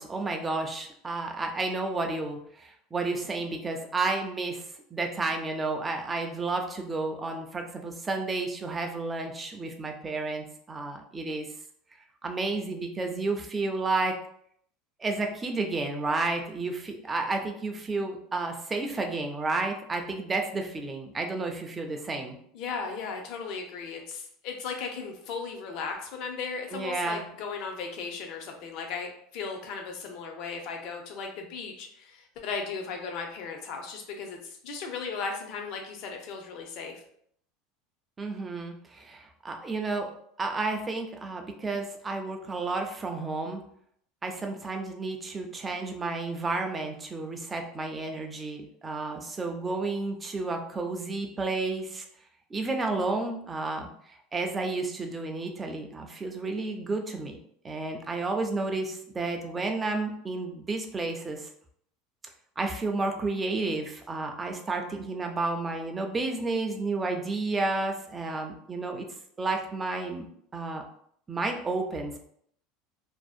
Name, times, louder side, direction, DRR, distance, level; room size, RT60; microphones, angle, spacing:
voice 1, 0.0-4.6 4.9-11.5 12.2-14.2 15.0-22.4 26.7-27.3 38.2-40.1 40.4-43.6 44.2-52.1 52.5-57.4 57.6-61.5 62.6-69.1 69.4-70.3 70.5-70.8 71.3-72.2, right 3 dB, 15° right, 3 dB, 0.3 m, -31 dB
voice 2, 22.5-37.0, left 5 dB, 50° left, 3 dB, 0.5 m, -36 dB
2.6 x 2.0 x 2.3 m, 0.67 s
supercardioid pair, 155°, 0 cm